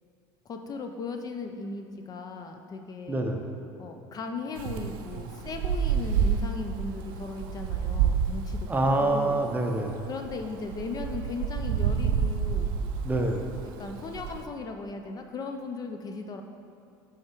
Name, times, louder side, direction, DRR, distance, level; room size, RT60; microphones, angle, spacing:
voice 1, 0.5-3.2 3.8-9.4 10.1-12.7 13.8-16.4, left 4 dB, 35° left, 5 dB, 0.4 m, -37 dB
voice 2, 3.1-3.5 8.7-10.0 13.0-13.5, right 2 dB, 15° right, 3 dB, 0.6 m, -26 dB
Wind, 4.6-14.4, right 7 dB, 80° right, 0.4 m, -29 dB
6.3 x 3.5 x 4.5 m, 2.5 s
supercardioid pair, 90°, 11 cm